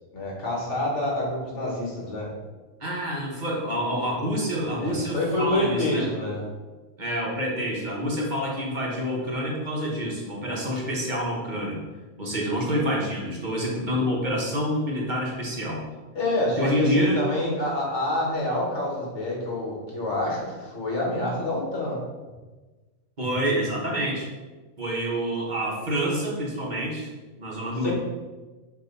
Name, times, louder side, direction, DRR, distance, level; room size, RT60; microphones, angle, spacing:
voice 1, 0.1-2.3 4.8-6.4 16.2-22.0 27.8-27.9, left 1 dB, 60° left, -2 dB, 1.8 m, -27 dB
voice 2, 2.8-6.1 7.0-11.8 12.2-15.9 16.6-17.2 23.2-24.3 24.8-27.1 27.4-27.9, equal, 35° right, -3 dB, 1.3 m, -27 dB
7.0 x 3.0 x 5.3 m, 1.3 s
omnidirectional pair, 1.4 m